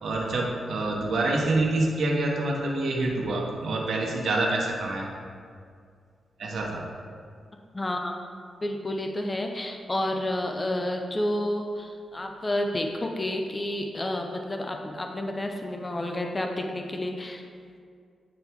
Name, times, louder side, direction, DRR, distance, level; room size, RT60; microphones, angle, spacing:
voice 1, 0.0-5.1 6.4-6.8, right 2 dB, 70° right, -1 dB, 1.1 m, -26 dB
voice 2, 7.7-8.1 8.6-17.4, left 1 dB, 20° left, 3 dB, 0.5 m, -30 dB
8.8 x 3.4 x 4.5 m, 2.2 s
wide cardioid pair, 115°, 0 cm